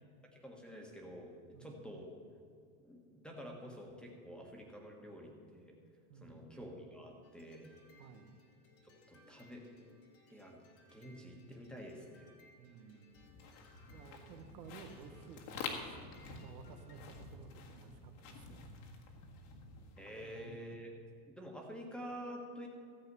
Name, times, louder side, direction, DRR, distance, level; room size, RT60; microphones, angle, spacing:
voice 1, 0.3-1.3 1.6-2.1 2.8-5.7 6.2-7.7 8.8-9.6 10.3-12.3 14.3-14.4 20.0-20.9 21.3-22.7, equal, ahead, 0 dB, 1.4 m, -49 dB
voice 2, 6.1-6.5 8.0-8.3 12.6-13.1 13.9-18.6 20.2-20.6, right 5 dB, 85° right, 6 dB, 1.4 m, -55 dB
sound 1, 7.2-17.2, left 2 dB, 30° left, 1.6 m, -66 dB
sound 2, 13.1-20.4, left 4 dB, 65° left, 1.9 m, -49 dB
14.0 x 7.7 x 5.5 m, 2.2 s
supercardioid pair, 140°, 47 cm